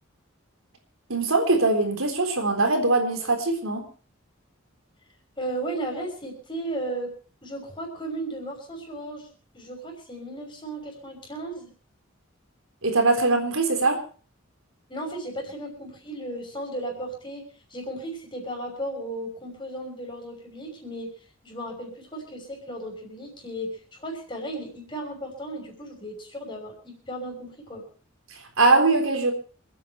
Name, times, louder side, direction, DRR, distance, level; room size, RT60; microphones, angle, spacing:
voice 1, 1.1-3.8 12.8-14.0 28.6-29.3, right 3 dB, 85° right, 4 dB, 3.9 m, -21 dB
voice 2, 5.4-7.1 7.4-9.3 9.5-11.7 14.9-17.4 17.7-21.1 21.4-27.8, right 1 dB, 25° left, 1 dB, 6.1 m, -35 dB
28.0 x 9.4 x 4.6 m, 0.39 s
head